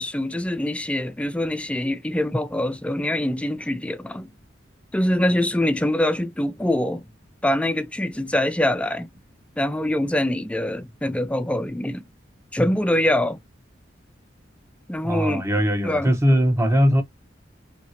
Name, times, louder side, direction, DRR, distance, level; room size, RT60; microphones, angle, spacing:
voice 1, 0.0-4.3 4.9-7.0 7.4-9.1 9.6-12.0 12.5-13.4 14.9-15.4 15.8-16.1, left 1 dB, 5° left, 0.3 m, -24 dB
voice 2, 15.0-17.0, equal, 15° right, 0.8 m, -20 dB
2.8 x 2.7 x 2.8 m
head